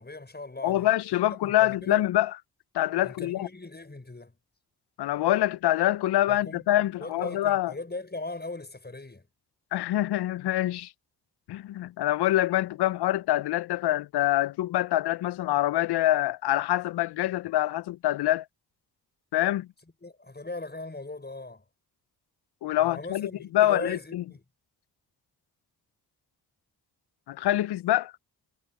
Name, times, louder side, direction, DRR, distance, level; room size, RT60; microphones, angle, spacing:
voice 1, 0.0-2.1 3.0-4.4 6.3-6.7 7.0-9.3 20.0-21.6 22.8-24.4, left 2 dB, 25° left, 6.4 m, -39 dB
voice 2, 0.6-2.3 2.7-3.5 5.0-7.7 9.7-10.9 11.5-18.5 19.3-19.7 22.6-24.2 27.3-28.1, left 14 dB, 80° left, 0.6 m, -25 dB
cardioid pair, 50°, 39 cm